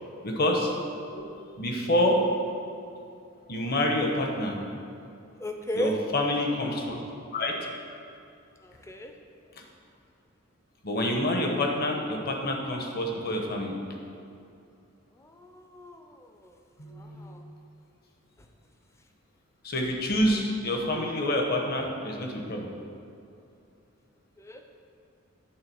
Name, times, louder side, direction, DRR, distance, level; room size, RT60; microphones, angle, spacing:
voice 1, 0.2-0.7 1.1-1.2 1.6-2.2 3.5-4.6 5.7-7.0 7.3-7.6 10.8-13.8 16.8-17.2 19.6-22.7, left 1 dB, 45° left, 1 dB, 1.0 m, -27 dB
voice 2, 5.4-6.0 8.6-9.1 15.2-16.5 16.9-17.4 24.4-24.6, equal, 15° left, 4 dB, 0.5 m, -36 dB
8.9 x 3.8 x 7.0 m, 2.6 s
head